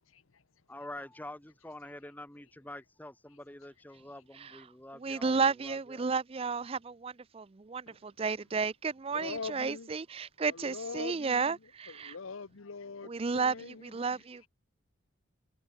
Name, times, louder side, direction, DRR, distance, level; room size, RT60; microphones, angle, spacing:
voice 1, 0.0-0.7 3.9-4.0 4.4-4.6 7.9-8.1 9.1-9.9 10.5-14.5, left 4 dB, 90° left, 0.9 m, -44 dB
voice 2, 0.7-6.1, left 1 dB, 10° left, 1.4 m, -47 dB
voice 3, 5.0-12.1 13.1-13.5 13.9-14.5, right 5 dB, 30° right, 0.4 m, -32 dB
head